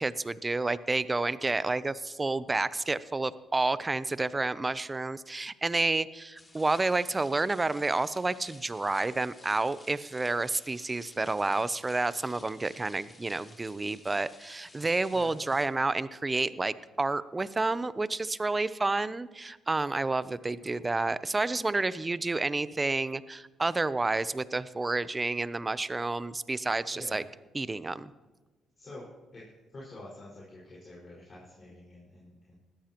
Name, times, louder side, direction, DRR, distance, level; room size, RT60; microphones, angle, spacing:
voice 1, 0.0-27.2 27.5-28.1, right 3 dB, 25° right, 16 dB, 0.6 m, -30 dB
sound 1, 6.4-15.7, left 2 dB, 25° left, 2.7 m, -54 dB
voice 2, 26.9-27.2 28.8-29.4 29.7-32.5, left 2 dB, 40° left, -6 dB, 5.3 m, -48 dB
19.5 x 13.5 x 3.0 m, 1.2 s
supercardioid pair, 65°, 0 cm